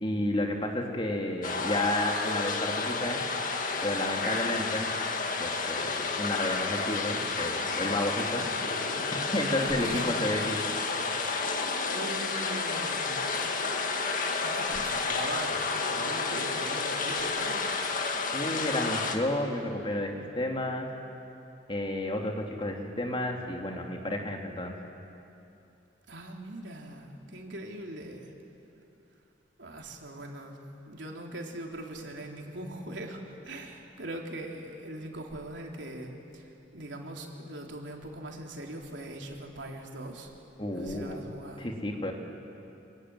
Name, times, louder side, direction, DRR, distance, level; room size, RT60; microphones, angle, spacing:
voice 1, 0.0-3.2 3.8-4.9 5.4-8.5 9.1-10.7 18.3-20.9 21.7-24.7 40.6-41.2 41.6-42.1, left 1 dB, 30° left, 1 dB, 2.7 m, -31 dB
sound 1, 1.4-19.2, left 4 dB, 45° left, 2.0 m, -31 dB
voice 2, 9.6-10.1 10.4-10.5 11.9-13.5 14.4-17.8 26.1-28.3 29.6-30.6 30.9-36.5 36.7-40.3 40.7-41.7, right 1 dB, 90° right, 1 dB, 3.5 m, -41 dB
25.5 x 24.0 x 9.6 m, 2.8 s
head